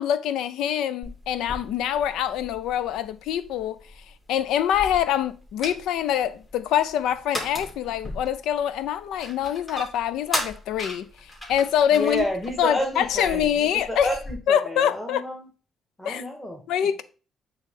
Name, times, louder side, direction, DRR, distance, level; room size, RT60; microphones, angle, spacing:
voice 1, 0.0-3.8 4.3-12.3 12.6-14.1 14.5-15.2 16.0-16.2 16.7-17.0, left 10 dB, 90° left, 0.5 m, -25 dB
sound 1, 1.0-14.4, left 1 dB, 25° left, 2.5 m, -38 dB
voice 2, 11.9-15.5 16.0-16.6, equal, 10° left, 1.6 m, -30 dB
9.2 x 3.1 x 3.7 m
cardioid pair, 90°, 0 cm